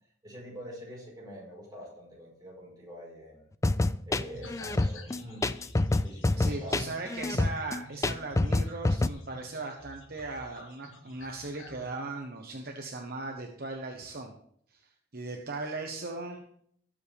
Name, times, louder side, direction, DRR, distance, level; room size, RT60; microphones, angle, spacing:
voice 1, 0.2-3.5 4.0-5.5 6.0-6.8, equal, 20° right, -4 dB, 4.7 m, -45 dB
sound 1, 3.6-9.1, left 2 dB, 15° left, 0.3 m, -27 dB
sound 2, 4.3-11.9, left 1 dB, 85° left, 1.7 m, -49 dB
voice 2, 6.4-14.3 14.7-14.8 15.1-16.4, right 3 dB, 50° right, 2 dB, 1.2 m, -38 dB
19.0 x 7.4 x 3.5 m, 0.65 s
head